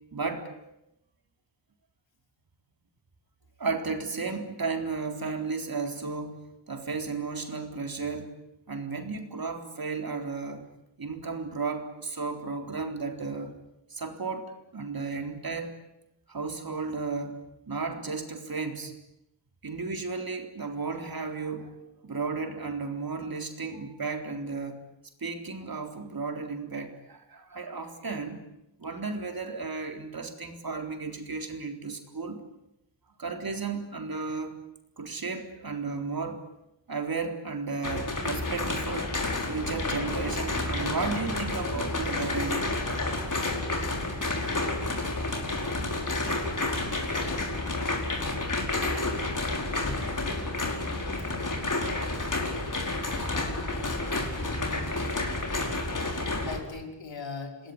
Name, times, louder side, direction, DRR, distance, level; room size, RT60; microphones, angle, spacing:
voice 1, 0.1-0.6 3.6-6.4 6.7-8.3 8.7-10.7 11.0-13.5 13.9-15.8 16.3-17.4 17.7-18.9 19.6-21.8 22.0-24.8 25.2-28.4 28.8-32.4 33.2-34.6 35.0-36.4 36.9-42.7 45.3-45.5 46.1-46.3 47.5-47.9, right 4 dB, 50° right, 4 dB, 3.9 m, -34 dB
sound 1, 37.8-56.6, left 2 dB, 45° left, 4.9 m, -30 dB
voice 2, 49.6-50.1 56.1-57.7, left 4 dB, 85° left, 3 dB, 5.1 m, -40 dB
28.0 x 19.5 x 9.9 m, 0.88 s
wide cardioid pair, 105°, 44 cm